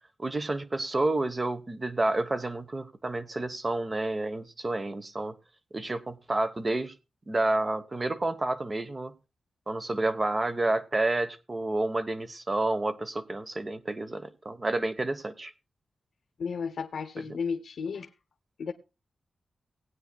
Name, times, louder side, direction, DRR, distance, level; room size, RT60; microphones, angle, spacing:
voice 1, 0.2-5.3 5.7-6.9 7.3-9.1 9.7-15.5 17.2-17.3, right 2 dB, 30° right, 11 dB, 1.0 m, -30 dB
voice 2, 16.4-18.1 18.6-18.7, left 5 dB, 75° left, 6 dB, 0.8 m, -33 dB
19.0 x 9.4 x 2.2 m, 0.28 s
wide cardioid pair, 115°, 0 cm